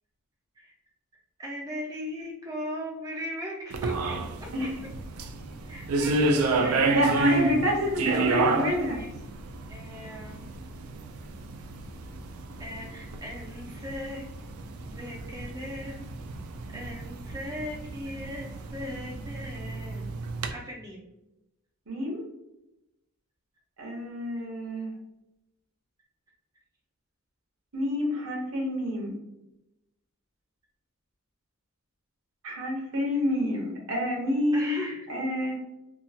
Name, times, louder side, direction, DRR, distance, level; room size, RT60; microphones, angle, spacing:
voice 1, 1.4-4.1 4.6-4.7 5.7-7.6 8.9-9.1 9.7-10.4 12.6-14.2 14.8-16.1 16.7-20.1 20.5-21.0 34.5-35.1, equal, 15° right, -2 dB, 0.4 m, -38 dB
sound 1, 3.7-20.5, right 3 dB, 85° right, 0.4 m, -31 dB
voice 2, 6.9-9.0 21.9-22.2 23.8-24.9 27.7-29.1 32.4-34.7 35.1-35.5, left 1 dB, 65° right, -1 dB, 0.9 m, -28 dB
2.8 x 2.3 x 2.6 m, 0.90 s
head